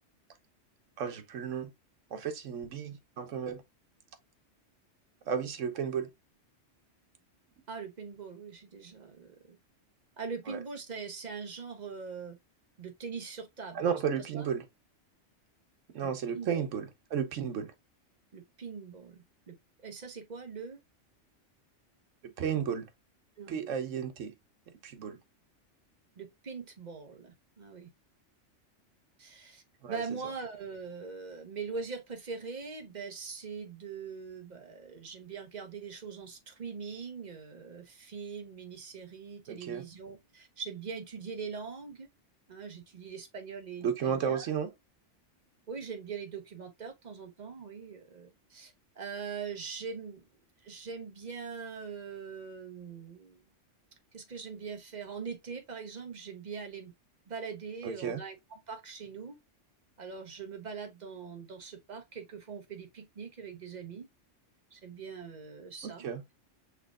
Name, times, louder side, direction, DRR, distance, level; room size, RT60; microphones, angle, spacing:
voice 1, 1.0-1.7 2.1-3.6 5.3-6.1 10.5-10.6 13.7-14.6 15.9-17.7 22.2-22.9 23.5-24.3 24.8-25.2 29.8-30.0 39.5-39.8 43.8-44.7 57.8-58.2 65.8-66.2, right 7 dB, 85° right, 1.2 m, -33 dB
voice 2, 7.7-9.6 10.2-12.4 12.8-14.5 16.0-16.6 18.3-19.5 19.8-20.8 23.4-23.6 26.2-27.9 29.2-29.6 29.9-42.1 42.5-44.5 45.7-50.2 50.6-53.4 54.1-56.9 57.3-59.3 60.0-64.1 64.7-66.0, right 5 dB, 40° right, 1.0 m, -42 dB
5.7 x 3.4 x 2.4 m
omnidirectional pair, 1.2 m